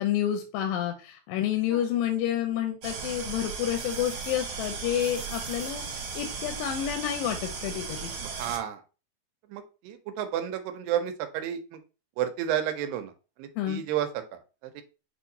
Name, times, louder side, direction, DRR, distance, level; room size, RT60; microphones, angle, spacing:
voice 1, 0.0-8.1 13.6-13.8, left 10 dB, 85° left, 5 dB, 2.2 m, -29 dB
sound 1, 2.8-8.6, right 5 dB, 65° right, 2.3 m, -36 dB
voice 2, 8.4-8.8 9.5-11.8 12.2-13.1 13.4-14.1 14.8-14.9, right 10 dB, 90° right, 8 dB, 2.4 m, -31 dB
6.4 x 2.8 x 2.6 m, 0.32 s
omnidirectional pair, 4.0 m